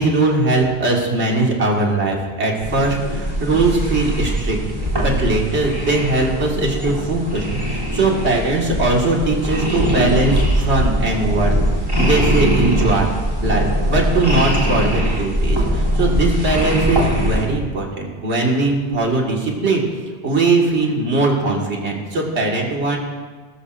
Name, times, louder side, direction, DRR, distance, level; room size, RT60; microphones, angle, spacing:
voice 1, 0.0-4.6 5.0-11.5 12.0-13.1 13.4-19.8 20.2-23.0, right 2 dB, 85° right, -1 dB, 2.1 m, -20 dB
sound 1, 2.6-17.4, equal, 25° right, 3.0 m, -21 dB
19.0 x 13.5 x 2.5 m, 1.4 s
omnidirectional pair, 1.1 m